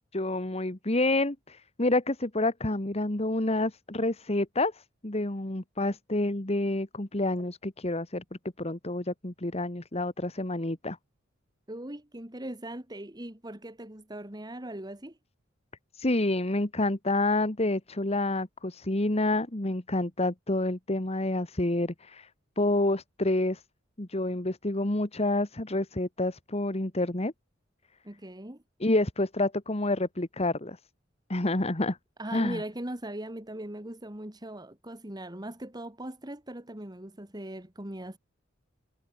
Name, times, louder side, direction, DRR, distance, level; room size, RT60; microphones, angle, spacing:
voice 1, 0.1-8.2 8.6-11.0 15.9-22.3 22.6-23.6 24.0-27.3 28.8-30.8 31.3-32.0 32.3-32.6, left 2 dB, 35° left, 1.7 m, -28 dB
voice 2, 11.7-15.2 28.0-28.6 32.2-38.2, right 1 dB, 20° right, 2.3 m, -39 dB
head